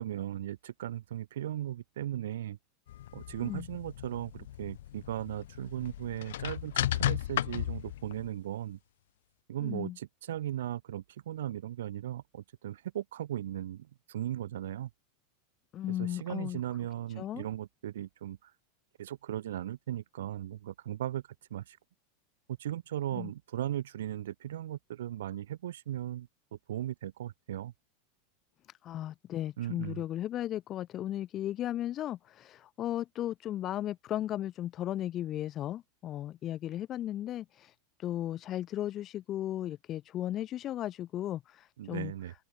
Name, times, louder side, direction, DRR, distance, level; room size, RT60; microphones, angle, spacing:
voice 1, 0.0-2.6 3.1-8.8 9.5-14.9 16.0-18.5 19.0-21.2 21.5-21.8 22.6-27.7 29.6-30.0 41.8-42.3, right 12 dB, 90° right, 3.0 m, -37 dB
sound 1, 2.9-8.3, left 13 dB, 85° left, 1.8 m, -35 dB
voice 2, 9.6-10.0 15.7-16.6 17.2-17.5 23.1-23.3 28.7-42.1, left 12 dB, 35° left, 4.2 m, -36 dB
open air
supercardioid pair, 135°, 0 cm